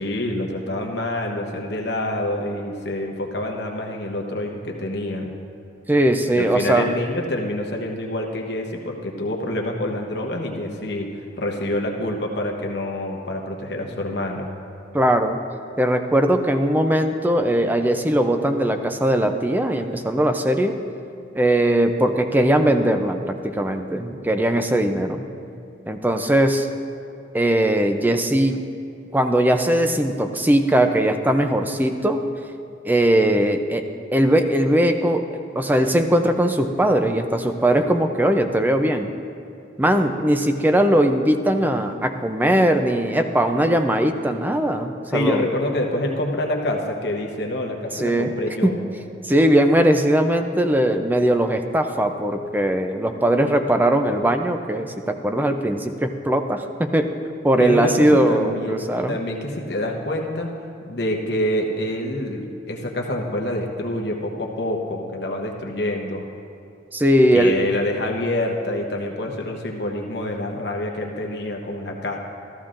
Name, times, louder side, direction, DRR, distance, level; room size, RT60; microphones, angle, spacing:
voice 1, 0.0-5.4 6.4-14.5 45.1-48.8 57.6-58.8 59.1-60.6 60.8-66.3 67.3-72.2, left 1 dB, 60° left, 1 dB, 1.0 m, -27 dB
voice 2, 5.9-6.9 14.9-15.4 15.8-20.8 21.4-25.2 25.9-26.7 27.3-28.6 29.1-32.3 32.8-33.8 34.1-39.1 39.8-45.4 47.9-48.3 48.6-48.8 49.2-57.2 57.4-59.2 66.9-67.6, right 1 dB, 10° right, 6 dB, 0.4 m, -20 dB
14.0 x 13.5 x 2.5 m, 2.6 s
head